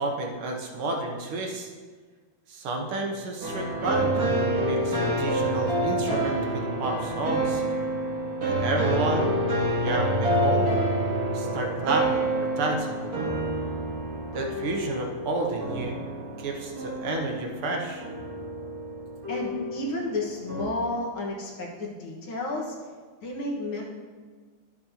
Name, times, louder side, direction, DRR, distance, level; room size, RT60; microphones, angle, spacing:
voice 1, 0.0-1.7 2.5-7.6 8.4-9.4 9.8-10.7 11.3-13.3 14.3-16.0 16.4-18.1, right 2 dB, 85° right, 1 dB, 2.0 m, -31 dB
sound 1, 3.4-20.6, right 1 dB, 45° right, 2.0 m, -28 dB
voice 2, 19.3-22.8 23.2-23.8, left 2 dB, 75° left, -2 dB, 2.3 m, -31 dB
12.0 x 7.5 x 2.8 m, 1.5 s
omnidirectional pair, 2.3 m